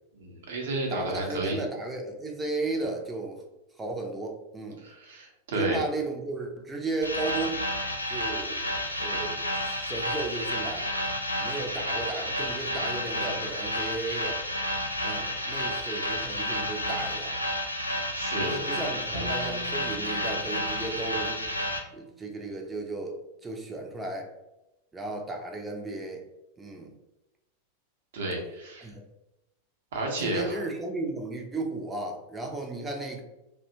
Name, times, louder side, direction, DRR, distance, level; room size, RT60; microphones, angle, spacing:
voice 1, 0.1-1.6 4.8-5.8 18.1-18.6 28.1-28.9 29.9-30.6, right 2 dB, 60° right, 0 dB, 0.7 m, -32 dB
voice 2, 0.9-3.4 3.8-4.8 5.5-7.6 8.1-8.6 9.0-10.9 11.4-14.4 15.0-17.4 18.4-21.4 21.9-23.1 23.4-24.3 24.9-26.2 26.6-26.9 28.8-29.0 30.2-33.2, right 2 dB, 10° right, 1 dB, 0.5 m, -34 dB
sound 1, 7.0-21.8, left 1 dB, 85° left, 0.3 m, -31 dB
Bowed string instrument, 19.1-22.3, right 1 dB, 50° left, 0.8 m, -44 dB
2.7 x 2.2 x 2.6 m, 0.93 s
figure-of-eight pair, 90°, 0 cm